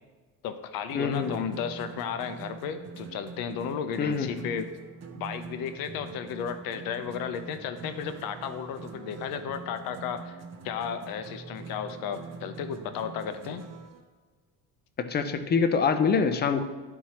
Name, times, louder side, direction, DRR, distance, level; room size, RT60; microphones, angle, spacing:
voice 1, 0.4-4.7 5.1-10.4 10.6-13.6, left 7 dB, 80° left, 9 dB, 0.7 m, -34 dB
voice 2, 0.9-1.4 4.0-4.4 15.0-16.6, left 5 dB, 30° left, 9 dB, 0.5 m, -25 dB
sound 1, 0.9-14.0, right 4 dB, 50° right, 0.8 m, -44 dB
11.5 x 4.5 x 2.9 m, 1.3 s
cardioid pair, 145°, 35 cm